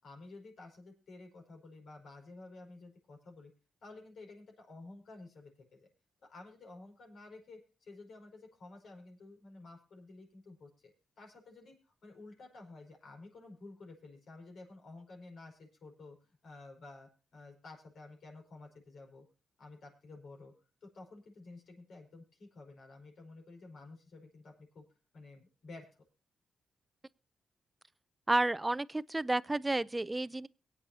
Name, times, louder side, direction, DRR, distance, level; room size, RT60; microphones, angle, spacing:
voice 1, 0.0-3.5 3.8-5.9 6.2-10.7 11.2-19.2 19.6-20.5 20.8-24.8 25.1-26.0, left 3 dB, 70° left, 5.2 m, -52 dB
voice 2, 28.3-30.5, right 2 dB, 15° right, 0.5 m, -31 dB
23.0 x 8.9 x 2.8 m
cardioid pair, 95°, 0 cm